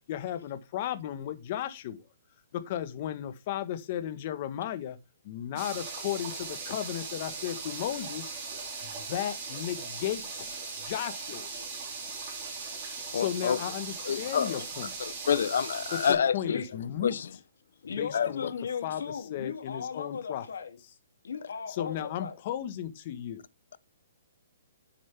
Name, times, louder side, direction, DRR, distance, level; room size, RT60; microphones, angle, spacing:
voice 1, 0.1-2.1 2.5-5.0 5.2-8.3 8.8-11.5 13.1-14.9 15.9-17.4 18.0-18.5 18.8-20.5 21.7-23.4, left 11 dB, 35° left, 1.4 m, -35 dB
sound 1, 5.6-16.1, right 4 dB, 30° right, 5.7 m, -39 dB
voice 2, 13.1-13.6 14.1-14.6 15.3-16.6 17.0-17.3 18.1-18.3, left 7 dB, 70° left, 0.8 m, -27 dB
voice 3, 16.4-16.8 17.8-20.8 21.2-22.3, left 6 dB, 85° left, 2.8 m, -37 dB
10.5 x 7.3 x 3.5 m
hypercardioid pair, 165°, 0 cm